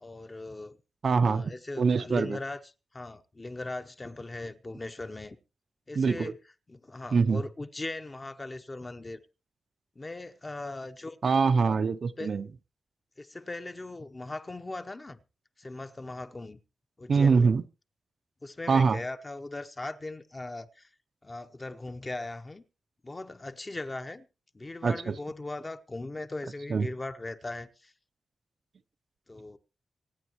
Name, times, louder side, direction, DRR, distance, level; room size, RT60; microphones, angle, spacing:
voice 1, 0.0-0.8 1.2-5.4 5.9-6.4 6.7-9.2 10.0-11.2 11.6-11.8 12.2-12.4 13.2-15.2 15.6-16.6 17.0-17.5 18.4-20.9 21.2-22.6 23.0-24.3 24.5-27.9 29.3-29.6, left 2 dB, 20° left, 0.8 m, -39 dB
voice 2, 1.0-2.4 6.0-6.3 7.1-7.4 11.2-12.4 17.1-17.6 18.7-19.0 24.8-25.1 26.7-26.9, right 5 dB, 50° right, 0.6 m, -24 dB
25.5 x 9.4 x 3.0 m
wide cardioid pair, 170°, 0 cm